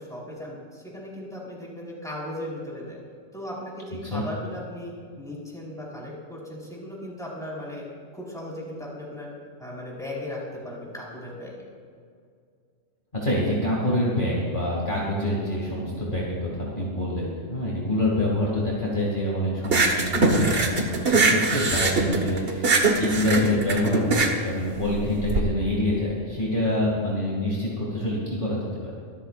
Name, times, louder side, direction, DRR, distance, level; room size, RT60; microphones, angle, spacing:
voice 1, 0.0-3.0 3.3-7.9 8.1-9.3 9.6-11.5, left 1 dB, ahead, -5 dB, 4.5 m, -37 dB
voice 2, 13.2-28.7, left 1 dB, 40° left, -5 dB, 2.6 m, -26 dB
sound 1, 19.6-25.4, right 3 dB, 50° right, 1.5 m, -22 dB
24.0 x 14.0 x 2.5 m, 2.2 s
omnidirectional pair, 1.3 m